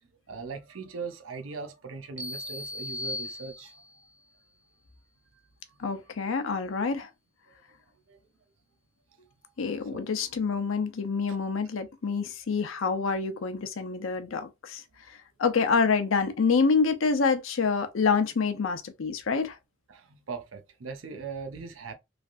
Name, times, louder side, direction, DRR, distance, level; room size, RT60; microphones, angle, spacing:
voice 1, 0.3-4.1 8.1-8.2 9.9-10.0 11.3-11.4 19.9-22.0, right 4 dB, 80° right, 0.6 m, -40 dB
sound 1, 2.2-4.0, left 1 dB, 5° right, 0.5 m, -37 dB
voice 2, 5.8-7.1 9.6-19.6, left 5 dB, 90° left, 0.6 m, -27 dB
3.2 x 2.4 x 2.5 m
head